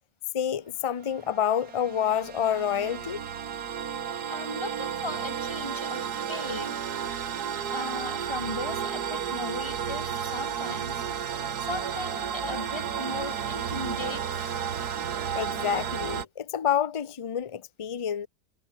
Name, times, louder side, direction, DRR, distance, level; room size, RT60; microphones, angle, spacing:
voice 1, 0.3-3.2 15.3-18.3, left 9 dB, 40° left, 0.4 m, -28 dB
sound 1, 1.0-16.2, right 8 dB, 80° right, 1.9 m, -32 dB
voice 2, 4.3-6.9 7.7-11.0 11.6-15.0, left 2 dB, 15° left, 2.8 m, -37 dB
omnidirectional pair, 1.7 m